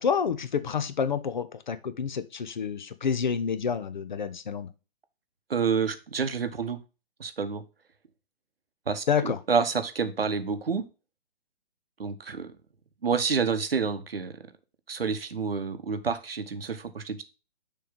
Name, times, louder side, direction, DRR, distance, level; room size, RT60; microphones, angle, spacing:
voice 1, 0.0-4.7 9.1-9.4, left 6 dB, 50° left, 0.6 m, -28 dB
voice 2, 5.5-6.8 7.2-7.6 8.9-10.8 12.0-12.5 13.0-14.4 14.9-17.2, right 5 dB, 70° right, 0.9 m, -28 dB
6.8 x 3.2 x 5.1 m
figure-of-eight pair, 130°, 31 cm